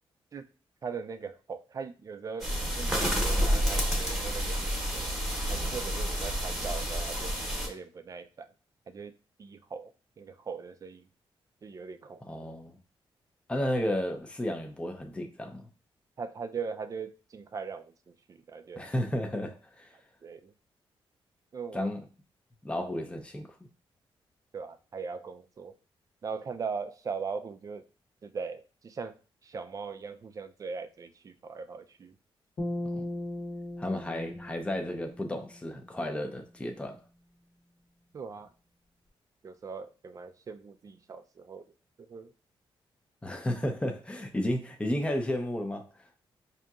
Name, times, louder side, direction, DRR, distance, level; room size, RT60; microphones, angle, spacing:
voice 1, 0.8-5.2 5.5-7.3 7.7-8.5 8.9-9.1 9.4-9.9 10.2-11.1 11.6-12.2 16.2-18.8 20.2-20.5 21.5-21.9 24.5-25.7 26.2-27.8 28.2-32.2 38.1-38.5 39.4-41.7 42.0-42.3, right 5 dB, 35° right, 0.4 m, -40 dB
sound 1, 2.4-7.7, equal, 5° right, 1.0 m, -29 dB
voice 2, 12.3-12.8 13.5-15.7 18.8-19.9 21.7-22.0 22.6-23.5 32.9-33.1 33.8-37.0 43.2-45.8, left 1 dB, 10° left, 0.5 m, -32 dB
sound 2, 32.6-35.9, left 1 dB, 45° left, 0.9 m, -38 dB
5.0 x 2.7 x 2.3 m
wide cardioid pair, 130°, 10 cm